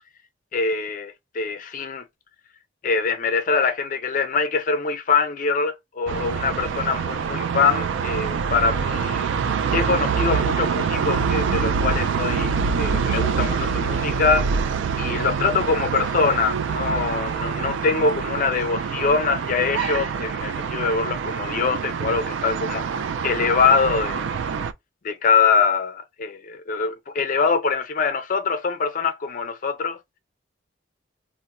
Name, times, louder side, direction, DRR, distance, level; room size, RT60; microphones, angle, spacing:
voice 1, 0.5-2.0 2.8-9.3 9.7-14.5 15.0-24.2 25.0-30.0, left 5 dB, 45° left, 0.4 m, -23 dB
sound 1, 6.1-24.7, right 6 dB, 75° right, 0.3 m, -25 dB
4.1 x 2.1 x 2.3 m
head